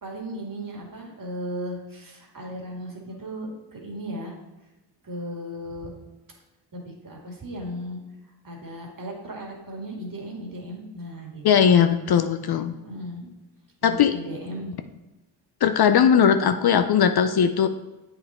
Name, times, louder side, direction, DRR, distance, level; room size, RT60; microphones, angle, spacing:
voice 1, 0.0-4.3 5.0-5.9 6.7-8.0 8.4-11.4 12.7-13.3 13.8-14.8, equal, 40° right, 0 dB, 2.1 m, -36 dB
voice 2, 11.4-12.7 13.8-14.1 15.6-17.7, left 8 dB, 50° left, 9 dB, 0.5 m, -19 dB
7.8 x 4.0 x 4.2 m, 1.1 s
supercardioid pair, 50°, 49 cm